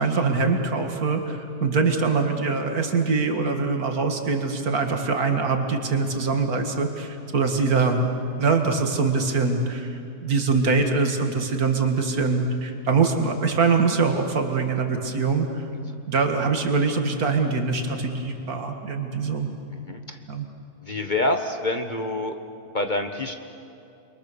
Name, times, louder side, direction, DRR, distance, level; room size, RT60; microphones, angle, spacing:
voice 1, 0.0-8.1 8.4-15.6 16.1-19.5 20.3-20.5, right 4 dB, 70° right, 4 dB, 2.4 m, -23 dB
voice 2, 19.9-20.2 20.8-22.3 22.7-23.3, left 2 dB, 35° left, 6 dB, 1.1 m, -26 dB
28.5 x 23.0 x 6.9 m, 2.6 s
omnidirectional pair, 1.6 m